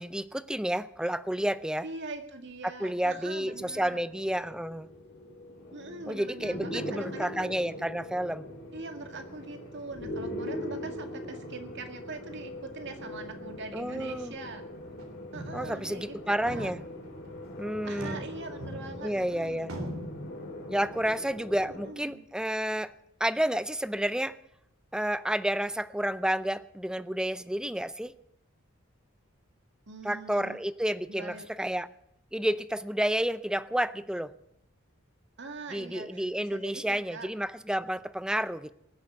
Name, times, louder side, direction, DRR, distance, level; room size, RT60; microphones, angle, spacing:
voice 1, 0.0-1.9 2.8-4.9 6.1-8.5 13.7-14.4 15.5-16.8 17.6-18.2 19.0-19.7 20.7-22.9 23.2-24.4 24.9-28.1 30.0-31.9 32.3-34.3 35.7-38.7, right 1 dB, 5° right, 15 dB, 0.5 m, -30 dB
voice 2, 1.8-4.0 5.7-7.5 8.7-14.7 15.3-16.2 16.5-16.7 17.8-19.8 21.7-22.2 29.9-30.6 31.1-31.5 35.4-37.3, right 3 dB, 60° right, 5 dB, 2.0 m, -43 dB
sound 1, 3.5-21.9, left 1 dB, 60° left, 3.3 m, -41 dB
sound 2, 14.7-15.0 15.3-15.8 16.1-16.2 16.5-17.3 17.8-19.3 19.7-20.1, equal, 80° right, 3.6 m, -40 dB
20.0 x 7.6 x 8.2 m, 0.78 s
head